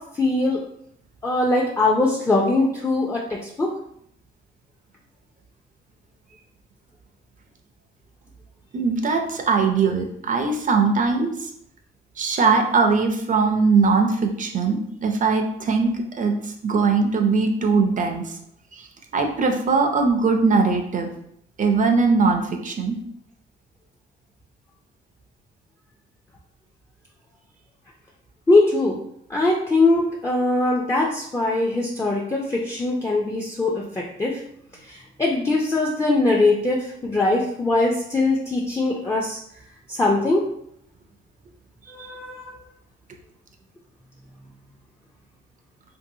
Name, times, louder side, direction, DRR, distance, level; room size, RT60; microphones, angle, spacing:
voice 1, 0.1-0.6 1.2-3.7 28.5-29.0 29.3-34.4 34.8-39.4 39.9-40.5 41.9-42.6, left 2 dB, 15° left, -3 dB, 0.4 m, -21 dB
voice 2, 8.7-11.5 12.2-18.3 18.7-18.8 19.1-21.1 21.6-23.0 42.0-42.1, right 4 dB, 40° right, 4 dB, 0.5 m, -21 dB
2.7 x 2.6 x 2.7 m, 0.71 s
cardioid pair, 90°, 20 cm